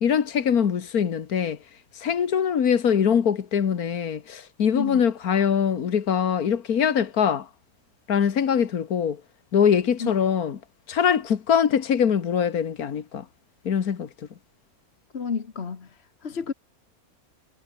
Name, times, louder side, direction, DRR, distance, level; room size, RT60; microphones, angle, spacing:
voice 1, 0.0-1.6 1.9-7.5 8.1-9.2 9.5-10.6 10.9-13.3 13.7-14.1, left 7 dB, 85° left, 1.9 m, -23 dB
voice 2, 15.1-16.5, left 5 dB, 45° left, 1.6 m, -31 dB
omnidirectional pair, 1.5 m